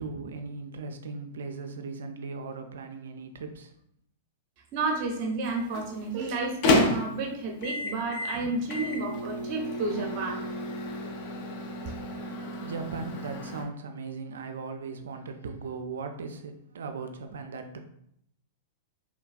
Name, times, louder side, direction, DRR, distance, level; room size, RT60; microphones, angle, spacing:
voice 1, 0.0-3.7 12.6-17.8, right 4 dB, 75° right, 6 dB, 0.4 m, -38 dB
voice 2, 4.7-10.4, right 3 dB, 45° right, 1 dB, 0.7 m, -31 dB
Microwave oven, 5.4-13.6, left 2 dB, 50° left, 0.6 m, -31 dB
3.3 x 2.2 x 2.4 m, 0.72 s
hypercardioid pair, 105°, 0 cm